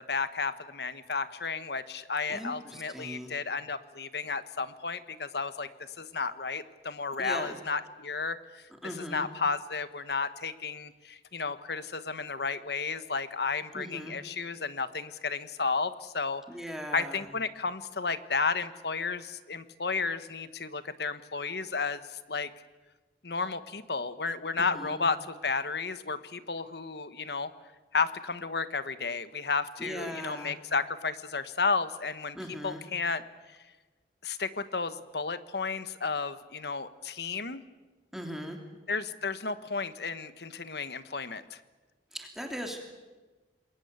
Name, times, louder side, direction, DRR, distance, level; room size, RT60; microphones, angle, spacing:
voice 1, 0.0-5.7 6.0-16.4 16.9-22.5 23.2-27.5 27.9-32.4 32.6-33.2 34.2-37.6 38.9-41.6, left 4 dB, 65° left, 13 dB, 1.2 m, -33 dB
voice 2, 2.3-3.3 7.2-7.6 8.8-9.3 13.7-14.2 16.5-17.3 24.6-25.1 29.8-30.5 32.3-32.8 38.1-38.6 42.1-42.8, equal, ahead, 2 dB, 2.9 m, -39 dB
28.0 x 21.5 x 8.2 m, 1.3 s
head